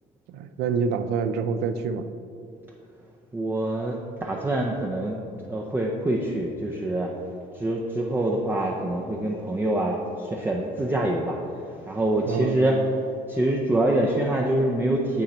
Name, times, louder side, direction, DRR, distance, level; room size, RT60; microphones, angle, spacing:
voice 1, 0.3-2.1 12.2-12.8, right 5 dB, 80° right, 10 dB, 0.4 m, -27 dB
voice 2, 3.3-5.2 5.5-7.1 7.5-11.4 11.9-12.8 13.3-15.2, right 1 dB, 10° right, -1 dB, 0.5 m, -25 dB
9.0 x 3.0 x 4.2 m, 2.6 s
cardioid pair, 110°, 17 cm